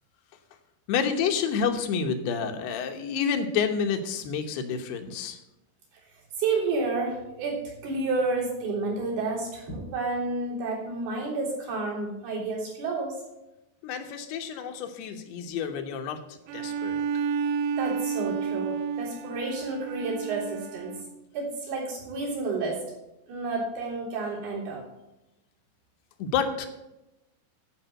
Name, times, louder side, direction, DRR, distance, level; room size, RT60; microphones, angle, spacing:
voice 1, 0.9-5.4 13.8-17.0 26.2-26.7, left 6 dB, 85° left, 5 dB, 3.1 m, -29 dB
voice 2, 6.4-13.1 17.8-20.9 21.3-22.8 23.3-24.8, right 3 dB, 70° right, -4 dB, 5.5 m, -30 dB
Bowed string instrument, 16.5-21.2, right 6 dB, 85° right, 2.0 m, -31 dB
12.0 x 5.5 x 7.7 m, 0.93 s
omnidirectional pair, 4.6 m